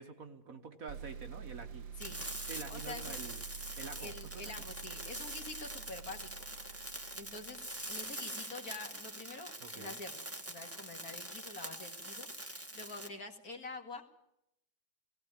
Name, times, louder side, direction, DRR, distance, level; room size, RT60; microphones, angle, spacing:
voice 1, 0.0-1.9 2.5-3.4 3.8-4.5 9.6-10.0, right 5 dB, 50° right, 7 dB, 1.7 m, -47 dB
sound 1, 0.9-8.4, right 7 dB, 90° right, 1.9 m, -49 dB
sound 2, 2.0-13.1, right 1 dB, 10° right, 1.5 m, -44 dB
voice 2, 2.7-3.2 4.0-6.5 7.1-14.0, left 3 dB, 50° left, 4 dB, 2.4 m, -47 dB
18.5 x 17.0 x 8.8 m, 0.81 s
omnidirectional pair, 2.0 m